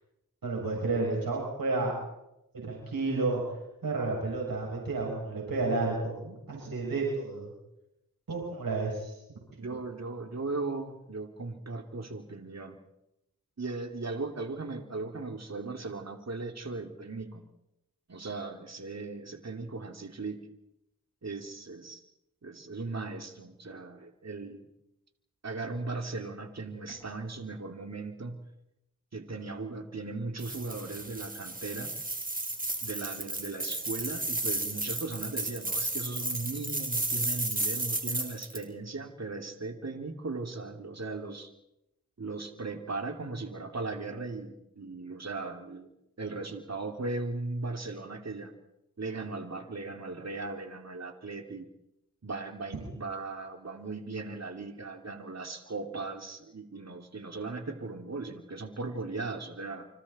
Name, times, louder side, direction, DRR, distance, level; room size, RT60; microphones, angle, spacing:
voice 1, 0.4-1.9 2.5-7.5 8.3-9.2 52.8-52.9, right 3 dB, 85° right, -2 dB, 7.0 m, -31 dB
voice 2, 9.6-12.8 13.6-17.5 18.1-20.5 21.2-22.0 22.4-24.7 25.4-28.4 29.1-31.9 32.8-41.5 42.2-45.9 46.2-48.5 49.0-51.7 52.2-59.9, right 3 dB, 50° right, 5 dB, 2.8 m, -38 dB
sound 1, 30.4-38.6, right 2 dB, 25° right, 4.0 m, -33 dB
28.5 x 26.0 x 4.3 m, 0.86 s
cardioid pair, 45°, 34 cm